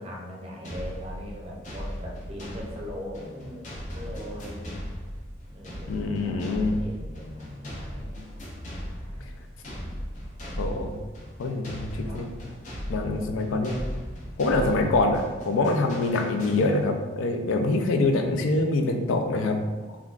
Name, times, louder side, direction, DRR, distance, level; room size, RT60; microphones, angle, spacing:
voice 1, 0.0-4.7 5.5-8.2 9.0-10.0 11.9-12.2 18.0-18.1, equal, 30° right, -2 dB, 0.5 m, -41 dB
sound 1, 0.6-17.1, equal, 40° left, 0.6 m, -38 dB
voice 2, 5.9-6.7 10.6-10.9 11.4-12.3 12.9-13.8 14.4-20.0, left 2 dB, 85° left, 4 dB, 0.4 m, -25 dB
3.6 x 2.2 x 2.4 m, 1.3 s
head